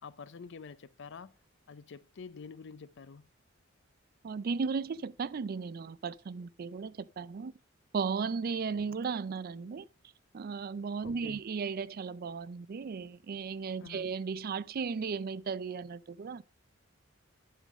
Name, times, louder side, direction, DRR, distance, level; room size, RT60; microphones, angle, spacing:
voice 1, 0.0-1.3 1.7-3.3 8.7-8.8 11.0-11.4 13.8-14.1, left 5 dB, 60° left, 0.5 m, -47 dB
voice 2, 4.2-7.5 7.9-9.8 10.3-16.4, right 5 dB, 50° right, 0.4 m, -35 dB
11.0 x 3.8 x 6.2 m
head